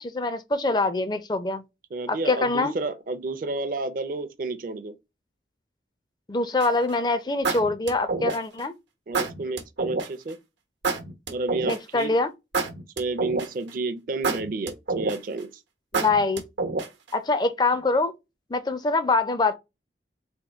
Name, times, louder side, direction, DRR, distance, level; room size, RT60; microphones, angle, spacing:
voice 1, 0.0-1.6 2.1-2.7 6.3-8.7 11.6-12.3 15.9-16.4 17.1-18.1 18.5-19.5, left 3 dB, 25° left, 0.4 m, -24 dB
voice 2, 1.9-5.0 9.1-10.4 11.3-12.1 13.0-15.5, right 3 dB, 50° right, 0.5 m, -31 dB
sound 1, 6.6-6.9 7.4-8.6 9.1-10.1 10.8-12.0 12.5-13.7 14.2-15.4 15.9-17.1, right 3 dB, 85° right, 0.9 m, -28 dB
3.6 x 2.2 x 4.2 m
head